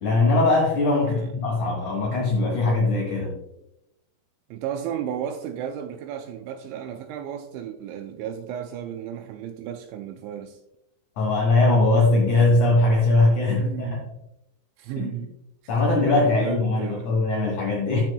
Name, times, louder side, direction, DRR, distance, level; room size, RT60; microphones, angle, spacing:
voice 1, 0.0-3.3 11.2-14.0 15.0-15.1 15.7-18.0, left 2 dB, 80° left, 1.7 m, -21 dB
voice 2, 4.5-10.6 13.5-14.1 14.8-15.3 15.6-15.7 16.0-17.1, right 9 dB, 85° right, 2.6 m, -34 dB
13.0 x 6.1 x 2.3 m
omnidirectional pair, 5.7 m